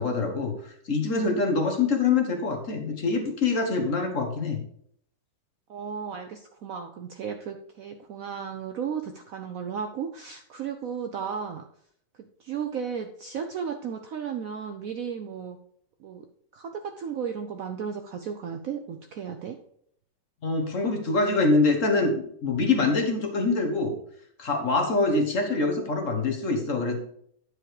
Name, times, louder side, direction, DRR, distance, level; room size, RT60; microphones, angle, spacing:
voice 1, 0.0-4.6 20.4-24.0 24.4-26.9, left 3 dB, 45° left, 4 dB, 1.5 m, -25 dB
voice 2, 5.7-11.6 12.4-15.6 16.0-16.3 16.5-19.6, right 7 dB, 65° right, 6 dB, 0.9 m, -34 dB
9.7 x 4.9 x 4.8 m, 0.66 s
omnidirectional pair, 2.0 m